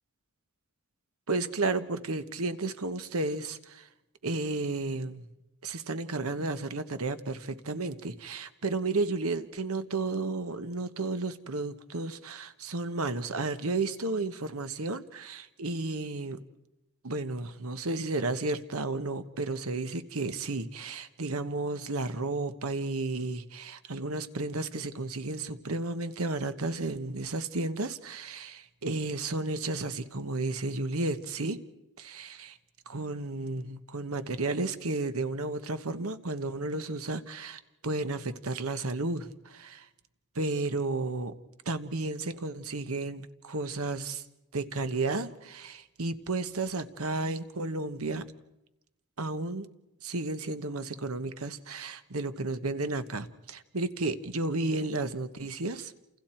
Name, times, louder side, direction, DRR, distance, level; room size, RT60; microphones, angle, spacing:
voice 1, 1.3-3.9 4.2-5.2 5.6-16.4 17.0-31.6 32.0-32.5 32.9-39.8 40.4-41.3 41.7-44.2 44.5-48.3 49.2-49.7 50.0-55.9, right 3 dB, 75° right, 11 dB, 1.2 m, -33 dB
29.0 x 28.5 x 4.5 m, 0.94 s
head